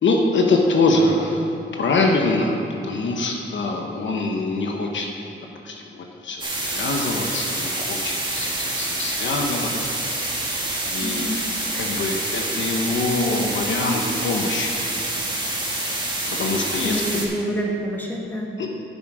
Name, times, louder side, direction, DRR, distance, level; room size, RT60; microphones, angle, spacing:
voice 1, 0.0-1.5 1.8-2.6 2.8-5.1 5.6-6.5 6.7-10.0 10.9-11.2 11.7-14.8 16.4-17.2 18.6-18.7, left 2 dB, 65° left, 2 dB, 1.1 m, -24 dB
sound 1, 6.4-17.3, right 2 dB, 20° right, 1.9 m, -27 dB
voice 2, 11.0-11.4 16.5-18.5, equal, 10° left, -1 dB, 1.6 m, -28 dB
9.2 x 7.6 x 4.9 m, 2.7 s
cardioid pair, 80°, 21 cm